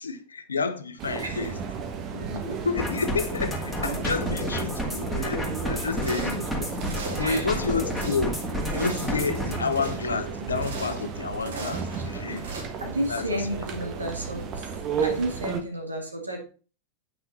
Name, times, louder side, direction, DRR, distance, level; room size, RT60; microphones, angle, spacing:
voice 1, 0.0-1.6 2.1-6.8 7.2-8.4 8.7-12.5 13.1-13.9, left 4 dB, 75° left, 0.8 m, -30 dB
sound 1, 1.0-15.6, right 6 dB, 35° right, 1.2 m, -33 dB
sound 2, 2.8-9.6, left 1 dB, ahead, 2.1 m, -31 dB
sound 3, 5.9-6.4 6.8-7.4 7.7-8.2 8.6-9.1 9.6-10.0 10.5-11.0 11.3-11.9 12.4-12.6, right 2 dB, 65° right, 2.2 m, -38 dB
voice 2, 7.2-7.6 11.9-12.1 12.8-14.7 15.0-16.4, right 1 dB, 80° right, 2.1 m, -32 dB
8.7 x 5.8 x 4.1 m
figure-of-eight pair, 90°, 0 cm